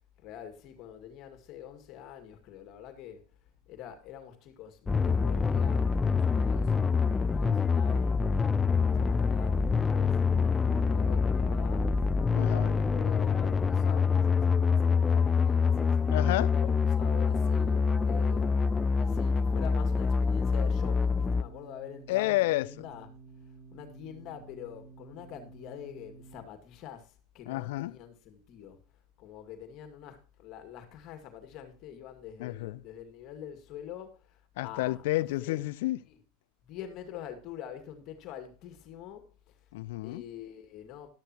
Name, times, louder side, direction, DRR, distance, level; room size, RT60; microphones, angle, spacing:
voice 1, 0.2-3.4 3.7-16.1 16.5-23.1 23.4-35.6 36.1-36.2 36.6-39.7 40.0-41.1, left 9 dB, 50° left, 2.2 m, -46 dB
sound 1, 4.9-21.4, left 5 dB, 20° left, 0.5 m, -26 dB
voice 2, 12.3-12.7 16.1-16.5 22.1-22.7 27.5-27.9 32.4-32.8 34.6-36.0 39.7-40.2, left 18 dB, 70° left, 0.5 m, -30 dB
sound 2, 21.0-26.4, right 4 dB, 10° right, 2.1 m, -52 dB
13.5 x 12.0 x 3.0 m
hypercardioid pair, 95°, 0 cm